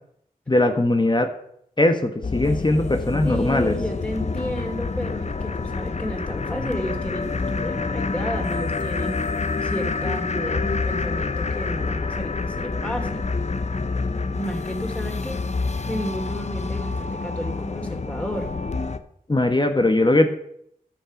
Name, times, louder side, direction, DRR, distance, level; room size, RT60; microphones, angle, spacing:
voice 1, 0.5-1.3 1.8-3.7 19.3-20.3, left 2 dB, 30° left, 6 dB, 1.2 m, -20 dB
sound 1, 2.2-19.0, left 4 dB, 45° left, 0.7 m, -27 dB
voice 2, 3.2-9.2 9.6-13.2 14.3-15.4 15.9-18.5, equal, 5° left, 2 dB, 3.0 m, -32 dB
13.0 x 5.7 x 5.1 m, 0.72 s
cardioid pair, 45°, 15 cm